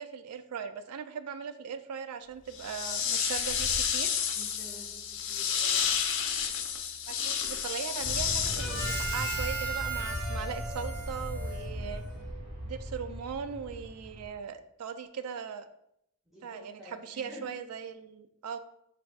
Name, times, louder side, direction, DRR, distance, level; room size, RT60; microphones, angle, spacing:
voice 1, 0.0-4.2 7.1-12.0 12.6-15.7 16.4-18.6, right 7 dB, 90° right, 10 dB, 0.4 m, -39 dB
sound 1, 2.5-9.8, left 8 dB, 55° left, 0.4 m, -31 dB
voice 2, 4.3-5.9 16.3-17.5, left 1 dB, ahead, -7 dB, 0.8 m, -50 dB
Aircraft, 8.0-14.3, equal, 25° right, 1.1 m, -38 dB
Harmonica, 8.5-12.3, right 4 dB, 65° right, 1.2 m, -37 dB
3.2 x 2.6 x 4.5 m, 0.77 s
head